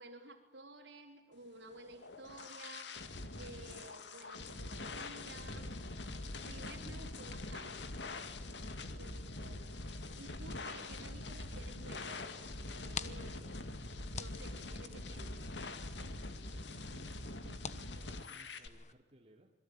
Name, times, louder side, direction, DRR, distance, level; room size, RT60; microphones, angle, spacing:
voice 1, 0.0-2.9 3.3-5.7 6.4-7.9 8.9-9.7 10.2-13.6 14.1-15.4, right 2 dB, 75° right, 4 dB, 4.6 m, -54 dB
sound 1, 1.7-18.7, left 2 dB, 75° left, 2.2 m, -44 dB
sound 2, 12.6-18.9, left 6 dB, 40° left, 1.2 m, -50 dB
voice 2, 16.2-19.5, right 1 dB, 35° right, 2 dB, 2.9 m, -61 dB
28.0 x 22.0 x 9.1 m, 0.96 s
head